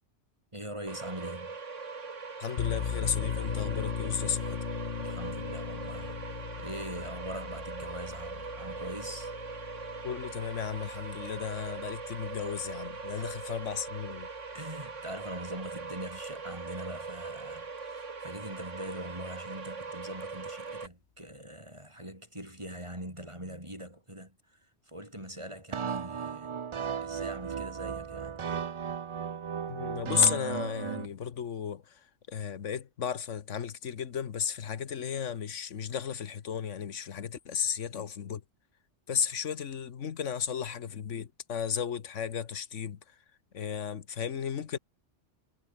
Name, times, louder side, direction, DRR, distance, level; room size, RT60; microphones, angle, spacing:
voice 1, 0.5-1.6 5.0-6.2 6.6-9.3 13.1-13.5 14.5-24.6 24.9-26.6 27.0-28.5, right 1 dB, 25° right, 7.2 m, -42 dB
sound 1, 0.9-20.9, right 4 dB, 90° right, 2.5 m, -41 dB
voice 2, 2.4-4.6 10.0-14.3 29.7-31.9 32.3-38.4 39.1-43.0 43.5-44.8, left 8 dB, 85° left, 1.5 m, -34 dB
sound 2, 2.6-13.9, left 8 dB, 55° left, 0.9 m, -38 dB
sound 3, 25.7-31.1, right 7 dB, 55° right, 0.3 m, -35 dB
omnidirectional pair, 1.2 m